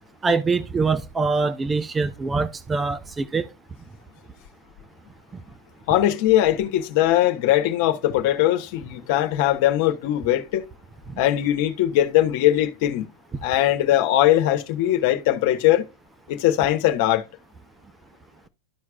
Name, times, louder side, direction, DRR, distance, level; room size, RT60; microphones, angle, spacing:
voice 1, 0.2-3.5, right 4 dB, 15° right, 0.5 m, -24 dB
voice 2, 5.9-10.6 11.2-13.1 13.4-15.9 16.3-17.2, left 13 dB, 60° left, 1.2 m, -20 dB
13.5 x 4.7 x 2.3 m
hypercardioid pair, 120°, 0 cm